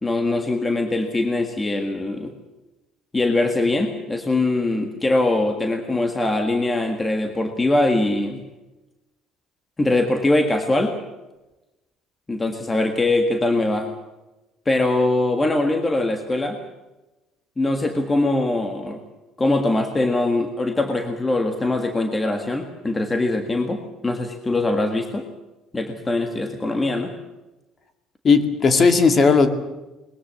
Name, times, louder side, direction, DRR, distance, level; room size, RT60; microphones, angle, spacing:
voice 1, 0.0-2.3 3.1-8.4 9.8-11.0 12.3-13.9 14.6-16.6 17.6-19.0 19.4-25.3 25.7-27.1, left 2 dB, 15° left, 6 dB, 1.7 m, -22 dB
voice 2, 28.2-29.5, left 4 dB, 30° left, 8 dB, 2.2 m, -15 dB
21.5 x 21.0 x 7.6 m, 1.0 s
cardioid pair, 155°, 0 cm